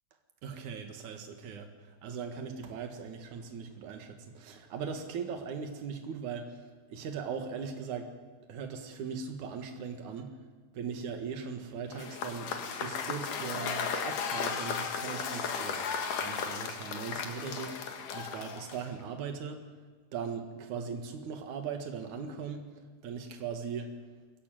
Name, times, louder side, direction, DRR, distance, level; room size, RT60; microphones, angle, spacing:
voice 1, 0.4-6.5 6.9-8.1 8.5-10.4 10.7-15.8 16.2-19.6 20.1-22.6 23.0-23.9, right 6 dB, 70° right, 5 dB, 3.2 m, -39 dB
Cheering / Applause / Crowd, 11.9-19.0, left 6 dB, 90° left, 3.2 m, -35 dB
22.5 x 15.0 x 9.1 m, 1.4 s
omnidirectional pair, 3.5 m